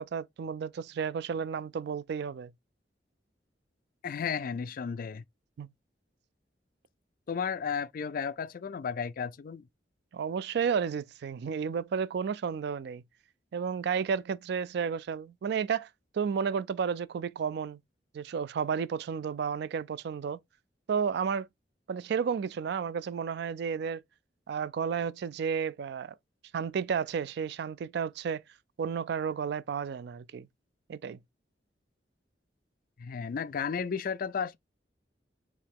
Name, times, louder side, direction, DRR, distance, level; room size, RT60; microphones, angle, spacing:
voice 1, 0.0-2.5 5.6-5.7 10.1-13.0 13.5-15.9 16.1-17.8 18.1-20.4 20.9-21.5 21.9-24.0 24.5-26.1 26.5-28.4 28.8-30.5 30.9-31.2, right 6 dB, 65° right, 0.3 m, -32 dB
voice 2, 4.0-5.2 7.3-9.7 33.0-34.6, left 6 dB, 55° left, 0.4 m, -33 dB
4.7 x 3.1 x 3.5 m
head